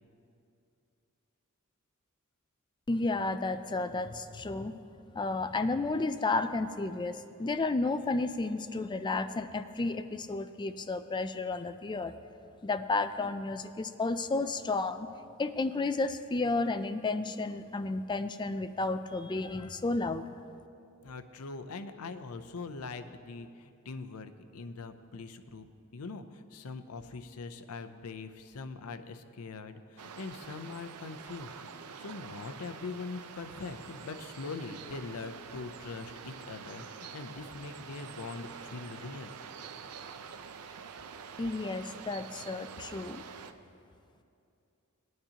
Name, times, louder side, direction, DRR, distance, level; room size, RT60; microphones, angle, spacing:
voice 1, 2.9-4.7 5.1-12.1 12.6-15.1 15.4-20.2 41.4-43.2, left 3 dB, 20° left, 10 dB, 0.3 m, -32 dB
voice 2, 21.0-25.7 25.9-39.3, left 4 dB, 80° left, 9 dB, 0.6 m, -42 dB
sound 1, 30.0-43.5, right 6 dB, 90° right, 0.5 m, -46 dB
18.5 x 9.4 x 2.9 m, 2.6 s
head